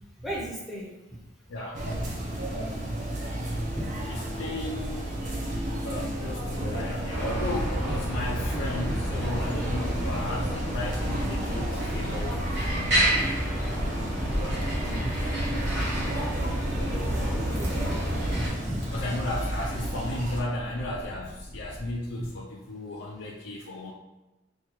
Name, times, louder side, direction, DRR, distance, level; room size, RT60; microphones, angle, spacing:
voice 1, 0.2-0.9 3.0-3.2 3.7-3.9 15.0-15.2 17.3-17.8 18.2-18.8 22.2-22.3, equal, ahead, -6 dB, 0.7 m, -36 dB
sound 1, 1.7-20.4, right 1 dB, 40° right, 0.6 m, -33 dB
voice 2, 4.1-5.3 5.8-13.4 14.4-15.2 18.9-23.9, left 1 dB, 70° left, -3 dB, 0.4 m, -35 dB
sound 2, 7.1-18.5, equal, 55° right, 1.2 m, -29 dB
sound 3, 14.6-22.0, equal, 70° right, 1.3 m, -42 dB
4.2 x 2.3 x 3.0 m, 1.1 s
head